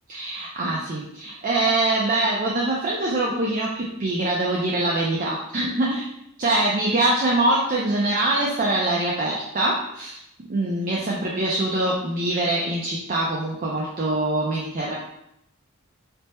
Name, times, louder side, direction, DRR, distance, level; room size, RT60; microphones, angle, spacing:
voice 1, 0.1-6.1 6.4-10.2 10.5-15.0, right 2 dB, 40° right, -3 dB, 0.4 m, -24 dB
3.3 x 2.1 x 4.2 m, 0.80 s
head